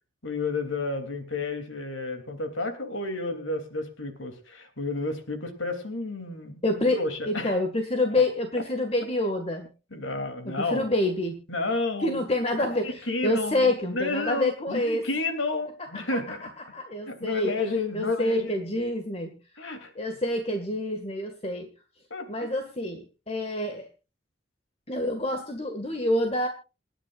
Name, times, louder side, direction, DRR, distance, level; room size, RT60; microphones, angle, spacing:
voice 1, 0.2-7.6 9.9-10.9 11.5-12.2 12.6-16.4 17.1-18.7 19.6-19.9 22.1-22.5, left 3 dB, 85° left, 8 dB, 3.0 m, -31 dB
voice 2, 6.6-7.0 7.3-9.7 10.5-11.3 12.0-15.1 16.7-17.5 17.9-19.3 20.0-21.7 22.3-23.9 24.9-26.5, left 1 dB, 30° left, 5 dB, 1.9 m, -27 dB
28.0 x 10.0 x 2.5 m, 0.31 s
head